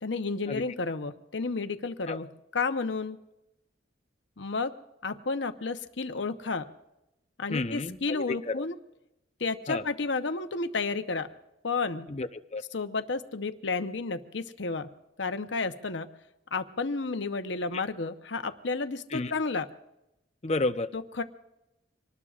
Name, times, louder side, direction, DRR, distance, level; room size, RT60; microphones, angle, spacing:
voice 1, 0.0-2.3 2.5-3.2 4.4-4.7 5.0-6.7 7.4-8.7 9.4-11.3 11.6-12.1 12.7-14.9 15.2-16.1 16.5-19.7 20.9-21.2, left 4 dB, 70° left, 8 dB, 0.9 m, -31 dB
voice 2, 7.5-8.7 9.7-9.8 12.1-12.6 19.1-19.4 20.4-20.9, left 2 dB, 35° left, 9 dB, 0.7 m, -31 dB
25.5 x 19.5 x 2.5 m, 0.91 s
head